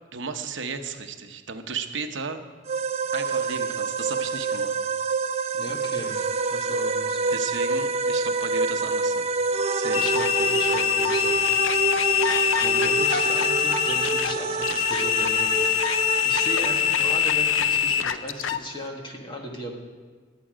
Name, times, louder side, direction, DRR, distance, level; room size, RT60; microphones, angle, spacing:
voice 1, 0.1-2.4 3.1-4.7 7.3-9.3 9.7-10.1, right 5 dB, 65° right, 6 dB, 0.9 m, -34 dB
sound 1, 2.7-18.1, right 4 dB, 35° right, 0.6 m, -27 dB
voice 2, 5.5-6.2 6.5-7.2 9.9-11.6 12.6-15.7 16.2-19.7, equal, 25° left, 1 dB, 1.8 m, -36 dB
sound 2, 9.9-18.6, left 10 dB, 85° left, 0.6 m, -24 dB
21.5 x 8.4 x 5.0 m, 1.5 s
head